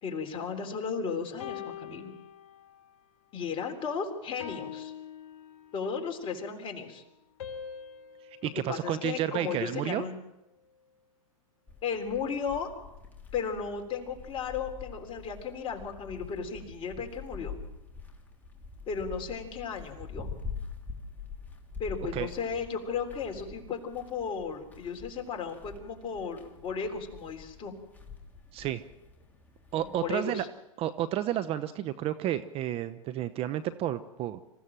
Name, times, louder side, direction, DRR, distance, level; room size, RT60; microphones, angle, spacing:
voice 1, 0.0-2.1 3.3-4.9 5.7-7.0 8.4-10.2 11.8-12.7 13.3-17.5 18.9-20.3 21.8-27.7 29.8-30.5, left 6 dB, 30° left, 4 dB, 3.6 m, -35 dB
sound 1, 1.4-2.9 3.4-3.7 4.4-6.1 7.4-9.8, left 9 dB, 55° left, 2.8 m, -44 dB
voice 2, 8.4-10.0 22.1-22.3 28.5-28.8 29.7-30.4 30.8-34.4, right 12 dB, 30° right, 12 dB, 0.8 m, -31 dB
sound 2, 11.7-30.2, left 5 dB, 10° left, 3.1 m, -45 dB
26.0 x 15.5 x 7.5 m, 0.95 s
hypercardioid pair, 115°, 18 cm